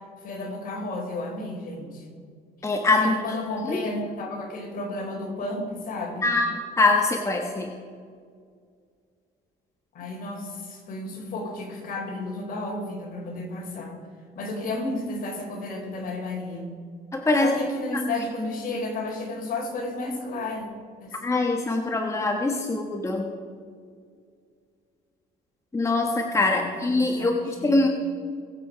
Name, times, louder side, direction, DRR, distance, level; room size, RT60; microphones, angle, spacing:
voice 1, 0.2-2.1 3.0-6.3 9.9-13.9 14.3-16.7 17.4-20.6 21.0-21.1 26.4-27.8, left 2 dB, 55° left, 0 dB, 4.2 m, -32 dB
voice 2, 2.6-3.2 3.7-3.8 6.2-6.5 6.8-7.7 17.1-17.6 17.9-18.0 21.2-23.3 25.7-27.9, left 2 dB, 15° left, 3 dB, 1.2 m, -23 dB
22.0 x 7.7 x 5.0 m, 2.1 s
cardioid pair, 110°, 17 cm